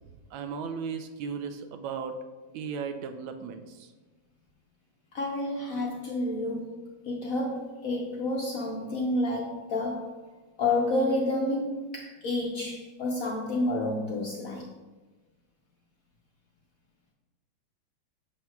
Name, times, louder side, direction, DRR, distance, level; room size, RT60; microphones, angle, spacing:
voice 1, 0.3-2.2 2.5-3.9, right 6 dB, 85° right, 7 dB, 1.4 m, -36 dB
voice 2, 5.1-10.2 10.6-14.7, left 2 dB, 65° left, -1 dB, 0.8 m, -30 dB
7.1 x 6.1 x 2.3 m, 1.2 s
omnidirectional pair, 2.1 m